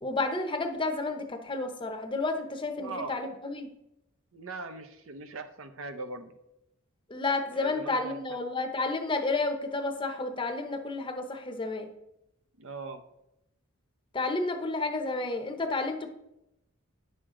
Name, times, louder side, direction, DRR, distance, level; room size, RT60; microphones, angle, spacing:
voice 1, 0.0-3.7 7.1-11.9 14.1-16.1, left 3 dB, 25° left, 5 dB, 0.8 m, -31 dB
voice 2, 2.8-3.2 4.3-6.3 7.6-8.4 12.6-13.0, right 3 dB, 65° right, 8 dB, 0.7 m, -40 dB
9.7 x 6.5 x 3.8 m, 0.86 s
head